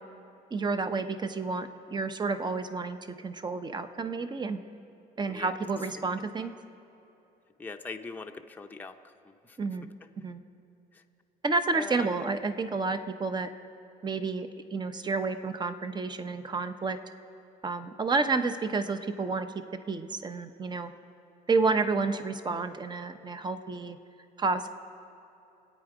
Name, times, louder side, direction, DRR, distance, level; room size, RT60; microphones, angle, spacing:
voice 1, 0.5-4.6 5.2-6.5 9.6-9.9 10.2-10.4 11.4-13.5 14.0-17.0 17.6-19.5 19.9-20.9 21.5-24.0 24.4-24.7, right 4 dB, 25° right, 9 dB, 0.9 m, -30 dB
voice 2, 7.6-9.6 10.9-11.0 11.7-12.1, left 3 dB, 10° left, 4 dB, 0.7 m, -42 dB
25.0 x 9.0 x 4.9 m, 2.9 s
cardioid pair, 110°, 17 cm